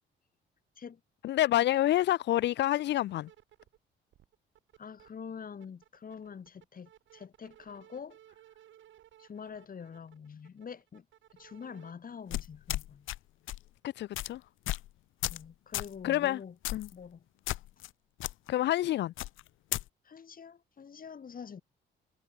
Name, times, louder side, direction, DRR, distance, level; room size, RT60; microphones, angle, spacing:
voice 1, 1.2-3.3 13.8-14.4 16.0-16.4 16.7-16.9 18.5-19.1, left 14 dB, 60° left, 0.4 m, -28 dB
sound 1, 1.6-3.8 4.1-5.1 5.5-11.9, right 12 dB, 75° right, 2.9 m, -59 dB
voice 2, 4.8-8.4 9.2-11.1 11.3-13.1 15.3-16.6 16.9-17.3 20.0-21.6, left 6 dB, 45° left, 4.9 m, -45 dB
sound 2, 12.3-13.2 13.5-13.7 14.1-14.3 14.7-14.9 15.2-15.4 15.7-15.9 16.6-16.9 17.5-17.9 18.2-18.3 19.2-19.8, left 16 dB, 85° left, 1.1 m, -34 dB
cardioid pair, 90°, 20 cm